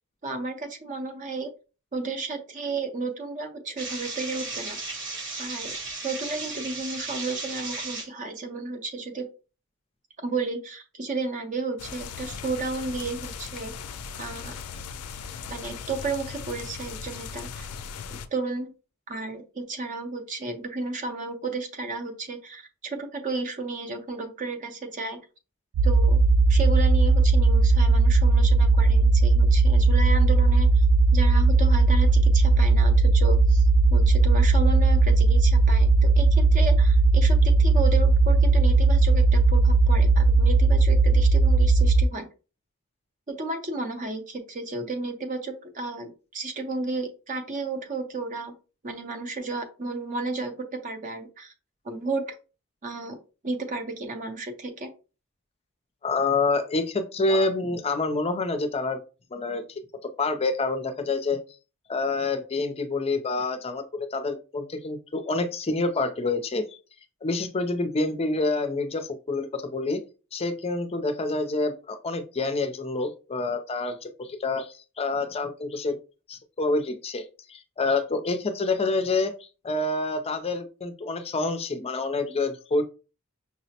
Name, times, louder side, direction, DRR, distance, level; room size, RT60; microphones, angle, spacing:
voice 1, 0.2-1.5 1.9-4.8 5.4-5.7 6.0-9.3 10.2-13.7 14.2-14.5 15.5-17.7 18.3-18.7 19.1-25.2 25.8-26.2 26.5-30.8 31.1-33.6 33.9-42.3 43.3-48.5 48.8-50.5 50.8-51.5 51.8-52.3 52.8-53.2 53.4-54.9 57.3-57.5, right 3 dB, 35° right, 5 dB, 0.6 m, -33 dB
sound 1, 3.8-8.1, right 3 dB, 55° right, 0.9 m, -35 dB
sound 2, 11.8-18.3, left 6 dB, 90° left, 0.4 m, -38 dB
sound 3, 25.7-42.0, right 3 dB, 75° right, 0.3 m, -18 dB
voice 2, 56.0-59.0 59.3-59.8 60.2-61.4 61.9-66.6 67.2-70.0 70.3-75.9 76.3-79.3 79.6-82.8, left 3 dB, 25° left, 8 dB, 0.4 m, -27 dB
5.7 x 2.0 x 2.8 m, 0.33 s
head